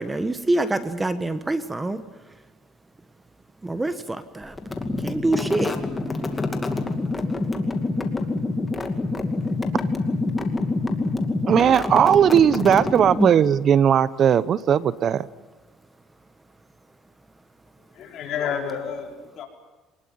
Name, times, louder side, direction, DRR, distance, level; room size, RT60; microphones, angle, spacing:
voice 1, 0.0-2.0 3.6-4.5 5.0-5.7, right 2 dB, 10° right, 11 dB, 1.2 m, -25 dB
sound 1, 4.6-13.5, left 3 dB, 15° left, 2.4 m, -26 dB
voice 2, 11.5-15.3, right 9 dB, 45° right, 17 dB, 0.7 m, -18 dB
voice 3, 18.0-19.5, left 7 dB, 55° left, 1 dB, 5.0 m, -30 dB
25.5 x 20.0 x 9.4 m, 1.2 s
cardioid pair, 125°, 0 cm